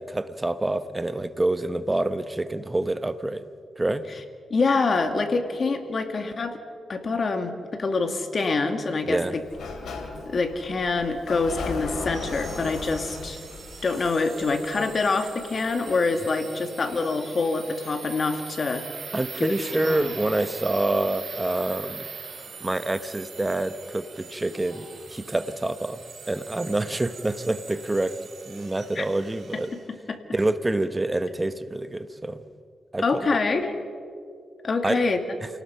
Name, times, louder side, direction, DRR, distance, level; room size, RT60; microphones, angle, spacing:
voice 1, 0.0-3.5 3.8-4.0 9.0-9.3 19.1-22.1 22.6-26.0 26.3-28.1 28.5-29.7 30.3-32.4 32.9-33.3 34.8-35.0, right 2 dB, 20° right, 12 dB, 1.0 m, -27 dB
voice 2, 4.5-6.6 6.9-9.4 10.3-13.4 13.8-18.8 19.4-20.1 29.0-29.1 29.7-30.2 33.0-33.8 34.6-35.2, left 3 dB, 45° left, 6 dB, 2.1 m, -26 dB
Sliding door, 9.4-15.1, left 3 dB, 85° left, 3.0 m, -36 dB
sound 1, 12.1-29.8, right 5 dB, 65° right, 4.8 m, -42 dB
28.5 x 18.0 x 5.7 m, 2.2 s
cardioid pair, 95°, 0 cm